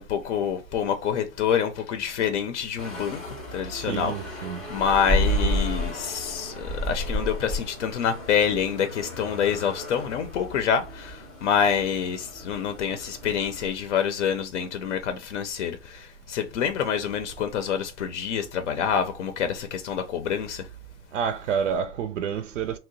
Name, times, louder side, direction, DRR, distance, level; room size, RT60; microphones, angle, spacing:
voice 1, 0.0-20.7, left 8 dB, 65° left, 0.6 m, -27 dB
sound 1, 2.8-13.7, equal, ahead, 0.4 m, -32 dB
voice 2, 3.9-4.6 21.1-22.8, right 7 dB, 75° right, 0.6 m, -28 dB
2.8 x 2.1 x 3.8 m
hypercardioid pair, 130°, 38 cm